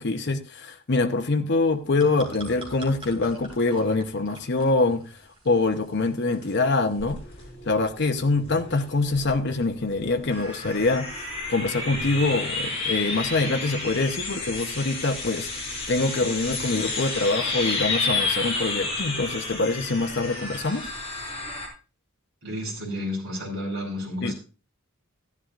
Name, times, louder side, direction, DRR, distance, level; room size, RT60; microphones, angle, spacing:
voice 1, 0.0-5.1 5.4-7.2 7.7-15.5 15.9-20.9 24.2-24.3, left 3 dB, 55° left, 6 dB, 0.8 m, -24 dB
sound 1, 1.6-7.1, right 1 dB, 25° right, 2.8 m, -45 dB
sound 2, 7.0-21.7, left 3 dB, 30° left, 4.5 m, -31 dB
voice 2, 22.4-24.3, left 1 dB, 50° right, -3 dB, 4.5 m, -31 dB
14.5 x 11.0 x 2.5 m, 0.34 s
head